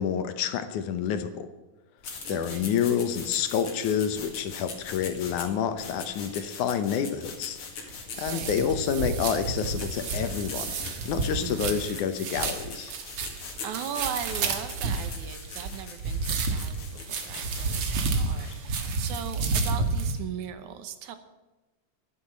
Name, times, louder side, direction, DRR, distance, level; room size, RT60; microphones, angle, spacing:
voice 1, 0.0-1.5 2.3-7.6 8.2-13.0, left 8 dB, 70° left, 10 dB, 2.3 m, -28 dB
sound 1, 2.0-18.7, left 4 dB, 45° left, 2.6 m, -42 dB
voice 2, 2.3-2.7 8.3-8.5 11.4-11.8 13.6-21.2, right 9 dB, 70° right, 10 dB, 2.3 m, -38 dB
sound 2, 7.9-20.1, right 4 dB, 50° right, 2.0 m, -30 dB
12.0 x 10.5 x 7.4 m, 1.1 s
omnidirectional pair, 3.8 m